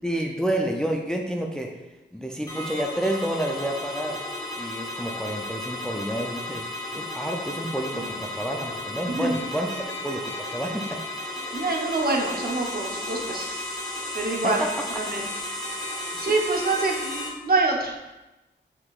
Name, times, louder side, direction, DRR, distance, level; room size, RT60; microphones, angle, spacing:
voice 1, 0.0-1.7 2.1-4.2 4.6-9.7 10.0-11.0 14.4-14.9 16.1-16.2, right 1 dB, 5° left, 2 dB, 0.4 m, -29 dB
sound 1, 2.5-17.3, left 1 dB, 20° left, 1.1 m, -34 dB
voice 2, 9.1-9.4 11.5-13.6 14.1-14.6 14.9-15.3 16.2-18.0, right 3 dB, 50° right, 0 dB, 0.9 m, -26 dB
5.7 x 3.7 x 2.4 m, 1.0 s
wide cardioid pair, 70°, 20 cm